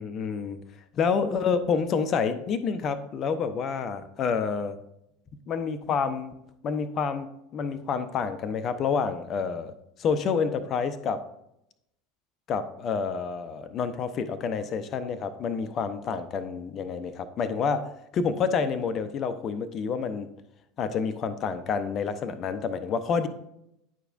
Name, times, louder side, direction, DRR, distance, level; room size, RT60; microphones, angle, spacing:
voice 1, 0.0-0.6 1.0-4.8 5.5-6.3 6.6-9.7 10.0-11.2 12.5-20.3 20.8-23.3, left 6 dB, 35° left, 11 dB, 0.6 m, -28 dB
9.7 x 4.8 x 2.5 m, 0.81 s
figure-of-eight pair, 75°, 0 cm